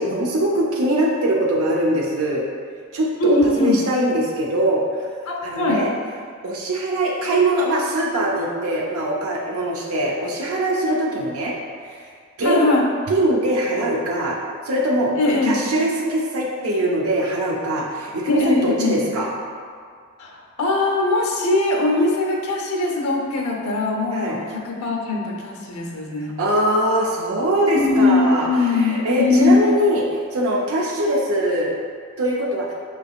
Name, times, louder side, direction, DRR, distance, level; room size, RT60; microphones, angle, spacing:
voice 1, 0.0-2.5 2.9-5.1 5.4-5.9 6.4-11.6 11.8-12.0 12.4-12.7 13.1-14.4 14.6-15.1 15.4-19.3 24.1-24.4 26.4-31.7 32.2-32.7, right 1 dB, 70° right, -3 dB, 0.5 m, -22 dB
voice 2, 3.2-3.8 5.3-5.8 12.4-12.8 15.2-15.5 18.2-18.9 20.2-26.3 27.7-29.5, left 3 dB, 75° left, -1 dB, 0.8 m, -21 dB
5.7 x 3.3 x 2.4 m, 2.1 s
head